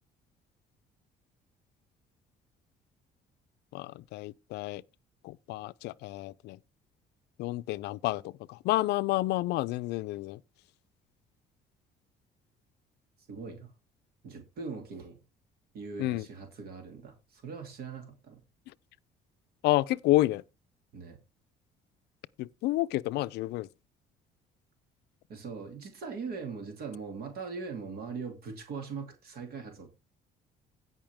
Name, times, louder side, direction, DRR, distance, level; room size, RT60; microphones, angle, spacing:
voice 1, 3.7-4.8 5.2-6.6 7.4-8.2 8.5-10.4 16.0-16.2 19.6-20.4 22.4-23.7, left 17 dB, 80° left, 0.5 m, -29 dB
voice 2, 13.3-13.7 14.2-15.2 15.7-18.4 20.9-21.2 25.3-29.9, right 5 dB, 65° right, 2.6 m, -41 dB
16.5 x 5.6 x 3.5 m
cardioid pair, 110°, 17 cm